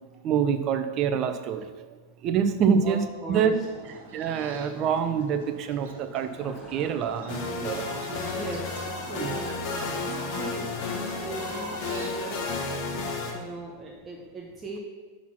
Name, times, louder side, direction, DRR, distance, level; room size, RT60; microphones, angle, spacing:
voice 1, 0.2-1.7 2.2-3.0 3.3-3.5 4.1-7.9 9.2-9.3 9.7-9.8, right 7 dB, 40° right, 9 dB, 0.6 m, -26 dB
voice 2, 2.8-3.6 8.0-12.5 13.3-14.8, right 3 dB, 25° right, -1 dB, 1.1 m, -39 dB
sound 1, 3.3-12.6, right 4 dB, 75° right, 1.2 m, -45 dB
sound 2, 6.4-13.5, left 2 dB, 15° left, 1.0 m, -45 dB
sound 3, 7.3-13.3, left 4 dB, 50° left, 1.3 m, -32 dB
6.0 x 4.1 x 5.9 m, 1.4 s
hypercardioid pair, 115°, 0 cm